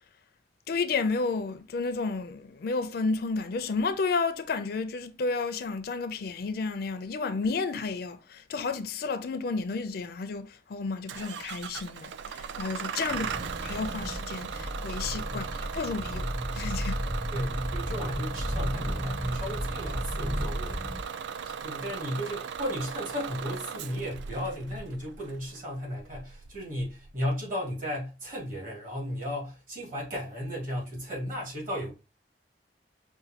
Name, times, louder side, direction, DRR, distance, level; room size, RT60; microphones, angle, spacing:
voice 1, 0.7-17.1, left 4 dB, 60° left, 0.4 m, -32 dB
Bus / Engine starting, 11.1-27.3, right 7 dB, 80° right, 0.3 m, -38 dB
sound 1, 13.1-21.0, equal, 5° right, 0.4 m, -34 dB
voice 2, 17.3-21.0 21.4-31.9, equal, 50° right, 2.0 m, -35 dB
5.3 x 2.2 x 2.8 m
head